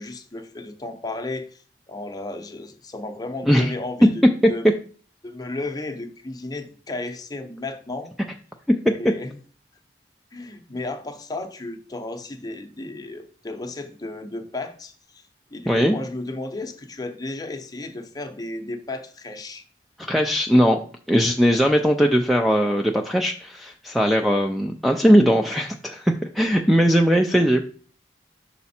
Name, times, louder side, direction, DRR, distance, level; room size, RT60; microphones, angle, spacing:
voice 1, 0.0-1.6 1.9-4.7 5.2-8.1 8.9-9.4 10.3-15.2 15.5-19.6, left 2 dB, 20° left, 5 dB, 0.7 m, -34 dB
voice 2, 15.7-16.0 20.0-20.8 21.1-27.6, equal, ahead, 4 dB, 0.3 m, -19 dB
5.8 x 4.1 x 4.2 m, 0.44 s
head